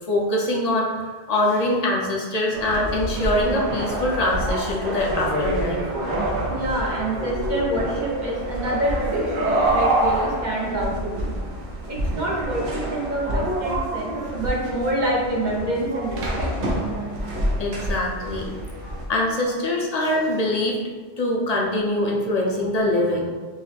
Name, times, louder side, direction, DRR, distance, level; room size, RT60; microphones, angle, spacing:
voice 1, 0.1-5.8 17.6-18.6 19.1-20.8 21.2-23.3, left 1 dB, 40° left, -2 dB, 0.7 m, -23 dB
sound 1, 2.5-19.0, right 1 dB, 85° right, 1.1 m, -27 dB
voice 2, 6.5-11.3 11.9-16.5, right 1 dB, 45° right, -3 dB, 0.9 m, -27 dB
5.4 x 2.1 x 3.3 m, 1.4 s
omnidirectional pair, 1.1 m